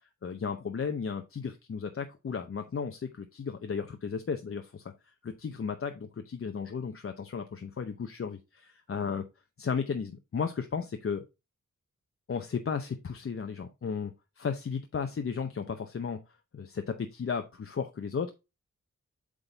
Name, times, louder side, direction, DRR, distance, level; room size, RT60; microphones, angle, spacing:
voice 1, 0.2-4.8 5.2-9.2 9.6-11.2 12.3-16.2 16.5-18.3, left 6 dB, 45° left, 0.7 m, -34 dB
8.2 x 3.8 x 3.9 m
wide cardioid pair, 95°, 30 cm